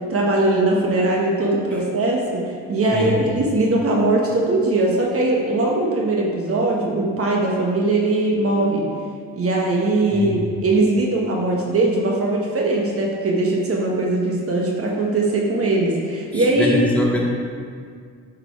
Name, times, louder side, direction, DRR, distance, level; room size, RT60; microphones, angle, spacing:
voice 1, 0.1-8.9 9.3-16.8, right 2 dB, 50° right, -1 dB, 1.3 m, -20 dB
voice 2, 2.9-3.3 10.1-10.5 16.3-17.2, equal, 5° left, -4 dB, 1.9 m, -23 dB
8.8 x 5.3 x 4.6 m, 2.1 s
cardioid pair, 90°, 30 cm